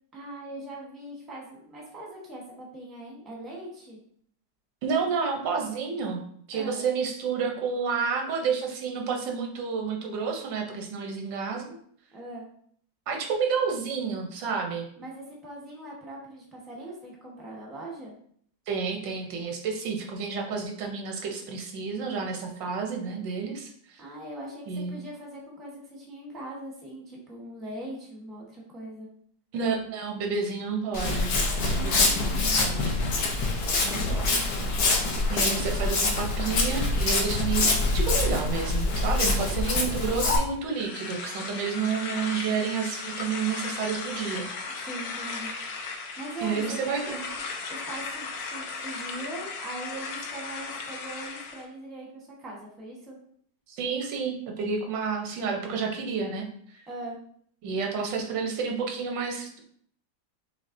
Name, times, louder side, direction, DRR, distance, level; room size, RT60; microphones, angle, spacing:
voice 1, 0.1-4.0 6.5-6.8 12.1-12.5 15.0-18.1 24.0-29.1 31.7-32.5 34.0-34.5 36.5-36.7 44.9-45.5 45.8-47.4 47.7-53.2 56.9-57.2, right 1 dB, ahead, -2 dB, 0.7 m, -41 dB
voice 2, 4.8-6.2 6.5-11.8 13.1-14.9 18.7-24.0 24.7-25.0 29.5-31.3 31.6-32.8 33.8-34.4 35.3-44.4 46.4-47.2 53.7-56.5 56.7-56.8 57.6-59.6, right 5 dB, 80° right, 2 dB, 1.5 m, -30 dB
Walk footsteps, 30.9-40.4, left 2 dB, 65° left, 1.2 m, -25 dB
sound 1, 40.7-51.7, left 4 dB, 85° left, 1.3 m, -36 dB
6.3 x 3.1 x 2.6 m, 0.63 s
omnidirectional pair, 1.9 m